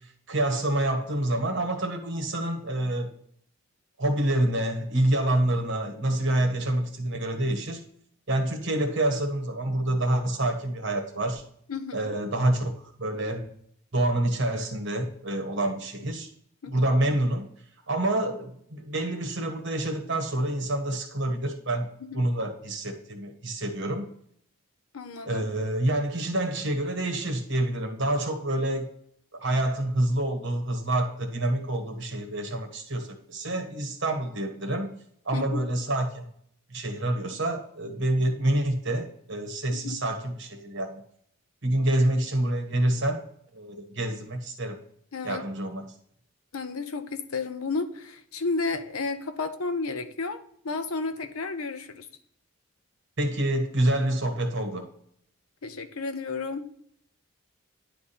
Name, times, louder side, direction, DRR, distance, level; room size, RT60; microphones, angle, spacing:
voice 1, 0.3-3.1 4.0-7.8 8.3-11.4 11.9-13.4 13.9-16.3 16.7-17.5 17.9-21.9 22.1-24.1 25.3-28.9 29.4-35.0 35.2-36.3 36.7-41.0 41.6-43.2 43.5-44.8 45.2-45.9 53.2-54.9, right 1 dB, 55° right, 4 dB, 1.3 m, -27 dB
voice 2, 11.7-12.1 16.6-16.9 22.0-22.2 24.9-25.5 35.3-35.6 39.7-40.0 45.1-45.4 46.5-52.1 55.6-56.7, left 4 dB, 80° left, 9 dB, 0.8 m, -32 dB
10.5 x 3.6 x 4.2 m, 0.68 s
head